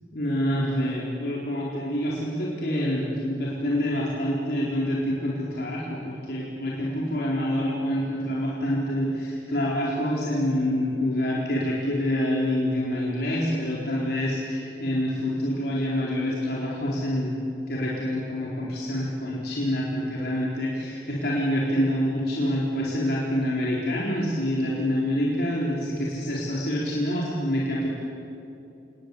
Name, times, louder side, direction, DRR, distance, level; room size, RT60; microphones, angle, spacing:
voice 1, 0.1-17.3 17.7-27.9, equal, 60° left, -5 dB, 4.2 m, -26 dB
28.5 x 20.0 x 9.9 m, 2.7 s
head